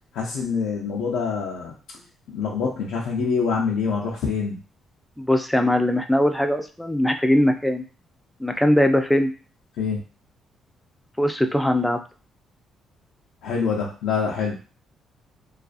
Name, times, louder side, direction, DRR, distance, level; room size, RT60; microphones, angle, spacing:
voice 1, 0.1-1.7 2.3-4.6 9.8-10.0 13.4-14.6, left 5 dB, 90° left, -3 dB, 0.4 m, -25 dB
voice 2, 5.2-7.8 8.4-9.3 11.2-12.0, left 1 dB, 5° left, 6 dB, 0.4 m, -20 dB
2.3 x 2.3 x 2.4 m, 0.35 s
cardioid pair, 90°, 0 cm